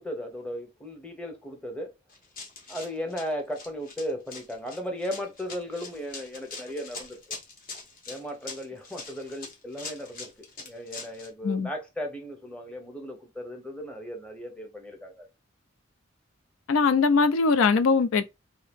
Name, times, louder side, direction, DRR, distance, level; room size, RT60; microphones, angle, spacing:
voice 1, 0.0-1.9 2.7-7.4 8.1-10.3 10.6-15.3, equal, 5° left, 0.8 m, -36 dB
Run, 2.1-11.3, left 3 dB, 45° left, 1.0 m, -42 dB
voice 2, 16.7-18.3, left 4 dB, 85° left, 0.4 m, -21 dB
2.7 x 2.7 x 3.4 m
head